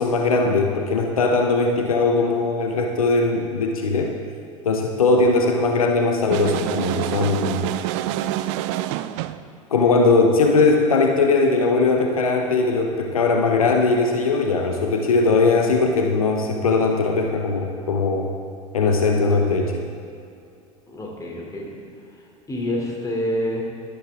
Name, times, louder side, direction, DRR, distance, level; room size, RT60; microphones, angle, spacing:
voice 1, 0.0-4.2 4.6-7.7 9.7-18.3 18.7-19.9, left 3 dB, 80° left, 3 dB, 0.8 m, -20 dB
sound 1, 6.3-9.5, right 13 dB, 55° right, 0.4 m, -26 dB
voice 2, 20.9-21.7 22.1-22.2 22.5-23.6, equal, 20° left, -1 dB, 2.6 m, -27 dB
11.5 x 11.5 x 3.5 m, 2.5 s
figure-of-eight pair, 75°, 18 cm